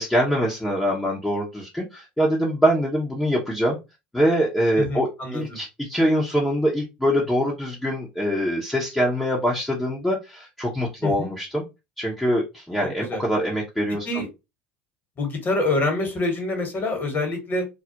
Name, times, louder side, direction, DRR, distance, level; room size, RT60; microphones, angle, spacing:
voice 1, 0.0-3.8 4.1-11.6 12.0-14.2, equal, 5° left, 0.6 m, -24 dB
voice 2, 4.8-5.6 11.0-11.3 12.8-13.2 14.0-14.3 15.2-17.7, left 2 dB, 35° left, 1.1 m, -26 dB
2.3 x 2.0 x 2.7 m
hypercardioid pair, 80°, 6 cm